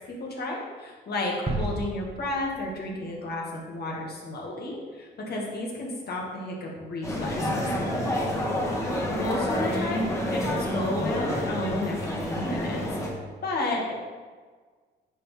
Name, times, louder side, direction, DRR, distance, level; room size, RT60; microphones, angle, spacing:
voice 1, 0.1-8.4 8.7-12.8 13.4-13.9, left 2 dB, 55° left, -3 dB, 2.0 m, -32 dB
sound 1, 1.5-3.4 3.8-3.9, right 2 dB, 30° right, 1.1 m, -34 dB
sound 2, 7.0-13.1, left 1 dB, 15° left, 1.9 m, -28 dB
9.9 x 4.5 x 3.4 m, 1.5 s
cardioid pair, 90°, 20 cm